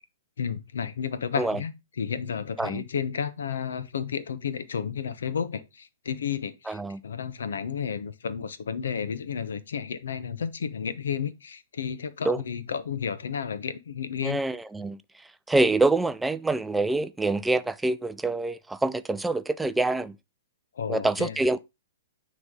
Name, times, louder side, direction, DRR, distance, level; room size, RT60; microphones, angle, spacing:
voice 1, 0.4-14.4 20.7-21.4, left 7 dB, 85° left, 0.8 m, -32 dB
voice 2, 6.7-7.0 12.3-12.4 14.2-15.0 15.5-20.2 20.9-21.6, right 2 dB, 5° right, 0.3 m, -26 dB
9.4 x 3.3 x 3.7 m
hypercardioid pair, 150°, 0 cm